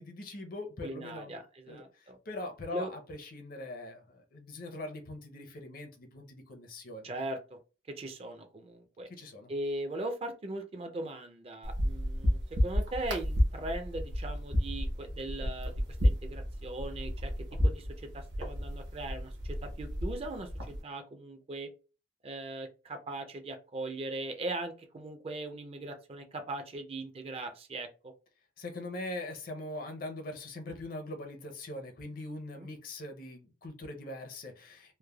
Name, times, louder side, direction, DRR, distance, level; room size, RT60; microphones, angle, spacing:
voice 1, 0.0-1.4 1.7-7.1 9.1-9.5 28.6-35.0, left 2 dB, 50° left, 5 dB, 0.6 m, -42 dB
voice 2, 0.8-2.2 2.7-2.9 7.0-7.6 7.9-9.1 9.5-15.7 16.0-17.3 17.6-17.9 18.1-21.7 22.2-27.9 32.5-32.7, right 2 dB, 35° right, 6 dB, 0.4 m, -39 dB
sound 1, 11.6-20.8, equal, 75° right, 0.8 m, -32 dB
3.1 x 2.0 x 2.2 m, 0.33 s
head